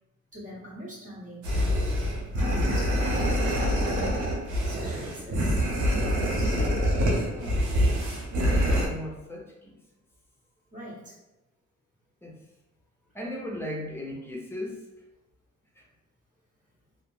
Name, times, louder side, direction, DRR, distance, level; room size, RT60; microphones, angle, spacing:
voice 1, 0.3-1.7 2.3-2.9 3.3-4.3 4.7-5.5 10.7-11.2, equal, 25° right, -7 dB, 1.2 m, -42 dB
sound 1, 1.4-8.9, equal, 85° right, 0.7 m, -25 dB
voice 2, 7.3-7.7 8.5-9.7 12.2-12.4 13.1-14.8 15.7-15.8, left 1 dB, 10° left, -2 dB, 0.8 m, -37 dB
2.4 x 2.1 x 3.1 m, 1.0 s
cardioid pair, 75°, 29 cm